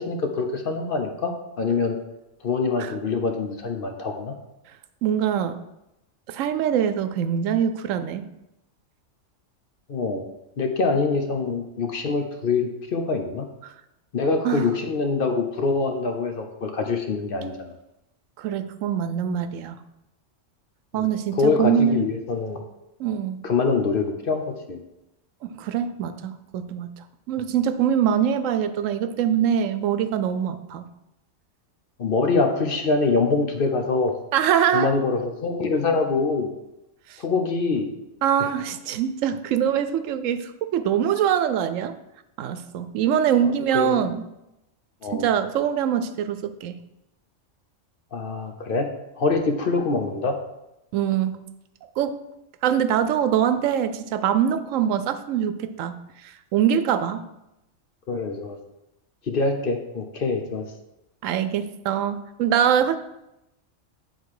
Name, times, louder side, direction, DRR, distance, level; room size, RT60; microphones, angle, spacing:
voice 1, 0.0-2.0 2.4-4.3 9.9-10.2 10.6-13.5 14.1-17.7 20.9-21.1 21.4-22.6 23.4-24.8 32.0-34.1 34.7-36.5 37.2-37.9 38.4-38.5 43.4-44.0 45.0-45.3 48.1-48.9 49.2-50.4 58.1-58.6 59.3-60.6, left 4 dB, 50° left, 5 dB, 0.8 m, -24 dB
voice 2, 5.0-5.6 6.3-8.3 14.4-14.7 18.4-19.8 20.9-22.1 23.0-23.4 25.4-26.9 27.3-30.8 34.3-34.9 37.1-37.2 38.2-41.9 42.4-44.2 45.1-46.8 50.9-51.4 52.0-52.2 52.6-56.0 56.2-57.2 61.2-63.0, right 9 dB, 90° right, 11 dB, 1.0 m, -23 dB
9.1 x 3.7 x 4.8 m, 0.90 s
omnidirectional pair, 1.3 m